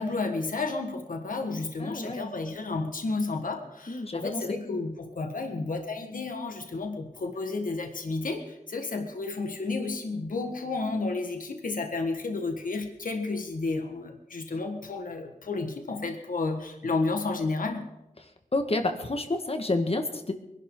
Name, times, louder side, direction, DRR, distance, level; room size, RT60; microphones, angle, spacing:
voice 1, 0.0-17.9, left 3 dB, 70° left, 4 dB, 1.6 m, -31 dB
voice 2, 1.8-2.3 3.9-4.6 18.5-20.3, left 2 dB, 45° left, 6 dB, 1.7 m, -29 dB
23.0 x 11.5 x 3.9 m, 0.91 s
wide cardioid pair, 75°, 14 cm